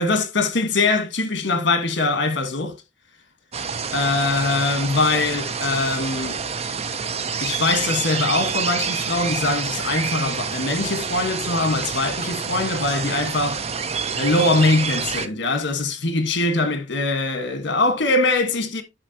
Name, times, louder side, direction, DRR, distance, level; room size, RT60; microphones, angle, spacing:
voice 1, 0.0-2.8 3.9-6.4 7.4-13.6 14.1-18.8, left 3 dB, 65° left, 1.4 m, -22 dB
sound 1, 3.5-15.3, right 6 dB, 35° right, 0.6 m, -27 dB
9.6 x 5.8 x 2.8 m
head